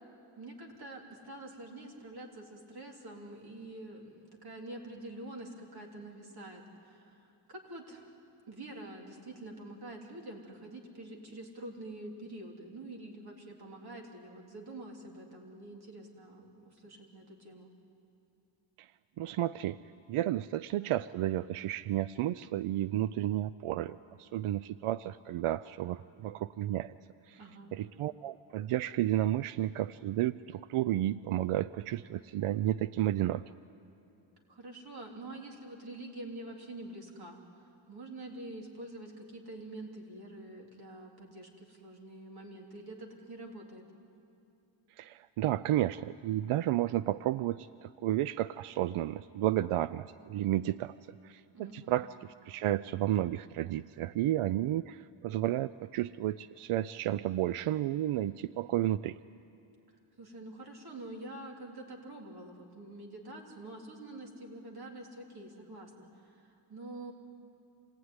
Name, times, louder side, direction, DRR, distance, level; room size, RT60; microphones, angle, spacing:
voice 1, 0.4-4.1 4.4-8.1 8.5-17.7 27.3-27.7 34.5-43.8 51.5-52.0 60.2-67.1, right 2 dB, 50° right, 1 dB, 3.5 m, -46 dB
voice 2, 19.2-19.8 20.1-26.9 27.3-27.4 27.7-33.4 45.0-50.9 51.2-51.4 51.7-52.1 52.5-59.2, right 13 dB, 90° right, 15 dB, 0.6 m, -32 dB
27.0 x 19.0 x 9.7 m, 2.6 s
wide cardioid pair, 165°, 49 cm